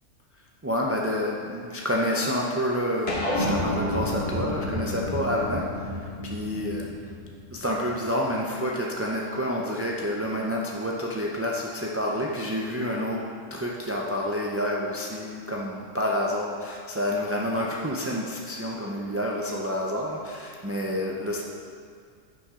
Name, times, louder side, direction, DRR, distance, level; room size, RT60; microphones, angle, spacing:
voice 1, 0.6-6.9 7.5-21.4, equal, 20° right, -3 dB, 0.3 m, -29 dB
sound 1, 3.1-7.8, left 1 dB, 50° left, 1.8 m, -30 dB
10.5 x 7.3 x 3.7 m, 2.2 s
omnidirectional pair, 1.4 m